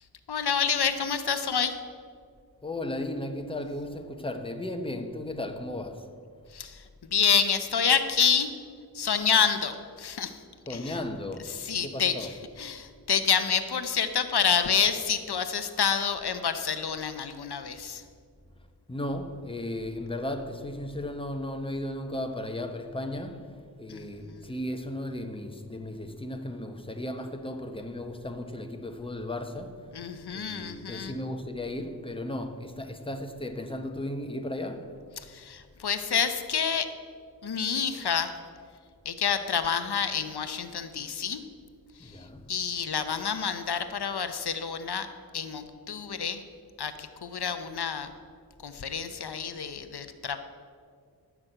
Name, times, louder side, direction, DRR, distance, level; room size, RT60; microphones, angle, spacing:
voice 1, 0.3-1.8 6.5-6.8 7.1-8.5 8.9-10.4 10.7-11.0 11.5-12.3 12.6-18.0 23.9-24.4 29.9-31.2 35.2-36.9 37.4-38.3 39.0-41.4 42.0-45.1 45.3-46.4 46.8-48.1 48.6-50.4, left 7 dB, 80° left, 0.8 m, -28 dB
voice 2, 2.6-6.2 10.7-12.3 18.9-35.1 42.0-42.5, left 1 dB, 15° left, 0.9 m, -35 dB
13.5 x 6.1 x 8.0 m
wide cardioid pair, 75°, 38 cm